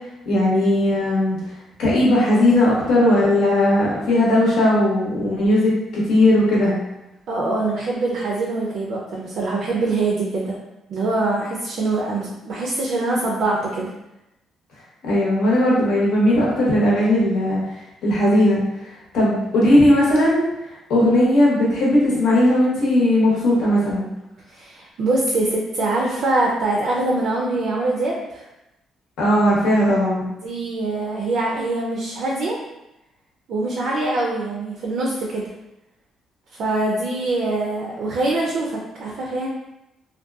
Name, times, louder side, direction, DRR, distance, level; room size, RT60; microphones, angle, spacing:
voice 1, 0.2-1.4 1.8-6.8 15.0-17.6 18.0-20.5 20.9-24.1 29.2-30.3, left 1 dB, 80° left, -5 dB, 0.9 m, -17 dB
voice 2, 7.3-10.6 10.9-13.9 24.5-28.4 30.4-32.6 33.5-35.5 36.5-39.5, right 2 dB, 60° right, -3 dB, 0.3 m, -23 dB
2.6 x 2.2 x 2.3 m, 0.91 s
cardioid pair, 160°, 0 cm